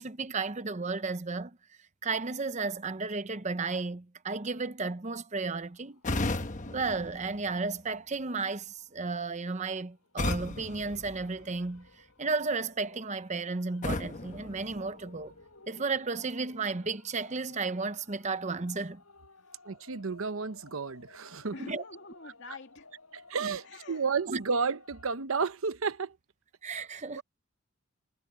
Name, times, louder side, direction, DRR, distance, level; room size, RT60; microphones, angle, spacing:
voice 1, 0.0-1.6 2.0-6.0 6.7-11.9 12.2-15.3 15.7-19.0 21.7-21.8 24.3-24.4 26.6-27.2, right 4 dB, 35° right, 0.8 m, -33 dB
sound 1, 5.5-25.2, left 3 dB, 85° left, 6.8 m, -58 dB
sound 2, 6.0-8.0 10.2-11.9 13.8-15.4, left 2 dB, 35° left, 1.1 m, -36 dB
voice 2, 19.7-21.5 23.3-26.2 27.2-27.3, right 5 dB, 70° right, 0.8 m, -32 dB
voice 3, 21.5-22.9 23.6-24.0 27.1-27.2, left 3 dB, 55° left, 2.4 m, -47 dB
head